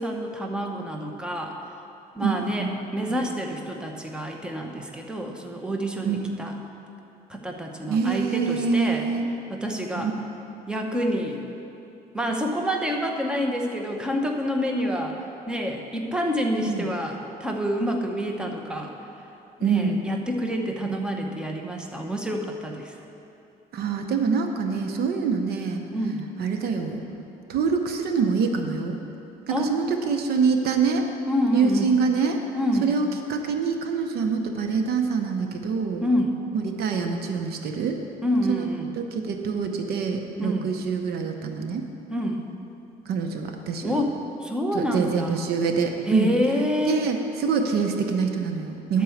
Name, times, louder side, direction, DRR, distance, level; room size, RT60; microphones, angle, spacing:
voice 1, 0.0-1.6 2.1-6.5 7.3-9.1 9.5-10.1 10.7-11.4 12.1-18.9 19.6-22.9 25.9-26.2 29.5-29.8 31.3-31.9 32.5-32.9 36.0-36.3 38.2-38.9 40.4-40.7 42.1-42.4 43.8-45.4 46.1-47.0 48.9-49.0, equal, 5° right, 2 dB, 0.9 m, -27 dB
voice 2, 2.2-2.7 6.0-6.3 7.9-9.3 10.0-10.1 16.7-16.9 19.6-20.0 23.7-25.8 26.4-27.0 27.5-29.0 29.5-31.0 31.5-32.4 32.8-36.0 36.5-38.0 38.5-38.7 39.0-41.9 43.1-43.9 44.7-46.3 46.9-49.0, right 5 dB, 70° right, 5 dB, 0.8 m, -25 dB
11.0 x 4.6 x 7.1 m, 2.7 s
cardioid pair, 110°, 17 cm